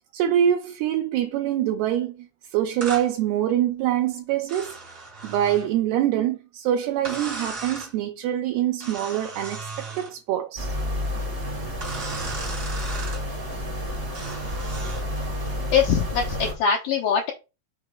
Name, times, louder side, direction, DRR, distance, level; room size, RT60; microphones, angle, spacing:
voice 1, 0.1-2.3 2.5-4.7 5.2-10.7, right 11 dB, 80° right, 2.6 m, -24 dB
sound 1, 2.8-3.1 4.5-5.7 7.0-7.9 8.8-10.1 11.8-13.2 14.1-15.1, right 3 dB, 40° right, 1.1 m, -36 dB
sound 2, 10.6-16.5, left 1 dB, 55° right, 0.7 m, -30 dB
voice 2, 15.7-17.3, left 7 dB, 75° left, 2.1 m, -22 dB
6.3 x 3.3 x 4.6 m
omnidirectional pair, 5.0 m